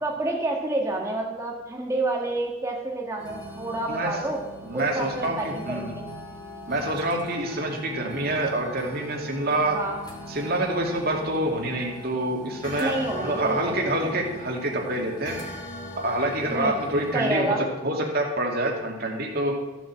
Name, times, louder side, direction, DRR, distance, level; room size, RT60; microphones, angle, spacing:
voice 1, 0.0-4.4 4.7-6.0 9.7-10.0 12.8-13.9 16.5-16.8 17.1-17.6, right 2 dB, 15° right, -1 dB, 1.6 m, -29 dB
sound 1, 3.2-17.4, left 1 dB, 20° left, 2.2 m, -40 dB
voice 2, 4.6-6.0 6.7-9.8 10.3-15.4 16.0-17.6 17.8-19.5, right 1 dB, 50° right, 1 dB, 2.5 m, -27 dB
15.0 x 7.7 x 7.5 m, 1.1 s
head